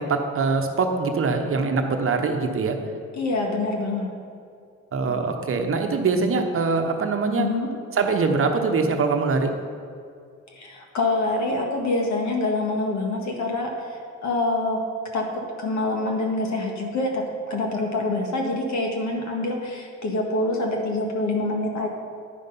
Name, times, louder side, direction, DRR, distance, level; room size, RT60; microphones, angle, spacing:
voice 1, 0.0-2.8 4.9-7.5 8.0-9.6, right 4 dB, 45° right, 5 dB, 1.0 m, -23 dB
voice 2, 3.1-4.1 7.4-7.7 10.5-14.8 15.1-21.9, left 2 dB, 70° left, 1 dB, 1.7 m, -26 dB
10.5 x 5.5 x 5.4 m, 2.3 s
cardioid pair, 90°, 30 cm